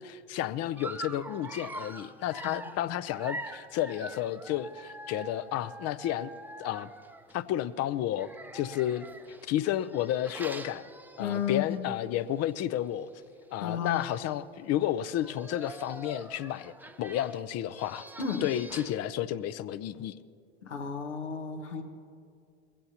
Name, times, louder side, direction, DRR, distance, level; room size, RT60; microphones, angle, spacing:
voice 1, 0.0-6.3 6.6-6.9 7.3-9.1 9.4-10.9 11.2-13.1 13.5-16.7 17.0-18.1 18.4-20.1, left 12 dB, 50° left, 14 dB, 0.6 m, -31 dB
Dog, 0.8-7.4 8.1-11.7 12.1-12.3 12.6-12.7 13.6-13.7 13.8-14.4 15.0-19.1, right 2 dB, 5° right, 0.7 m, -44 dB
voice 2, 11.2-11.9 13.6-14.0 18.2-18.5 20.6-21.8, left 7 dB, 90° left, 4 dB, 1.4 m, -33 dB
21.0 x 16.0 x 2.9 m, 2.3 s
hypercardioid pair, 75°, 34 cm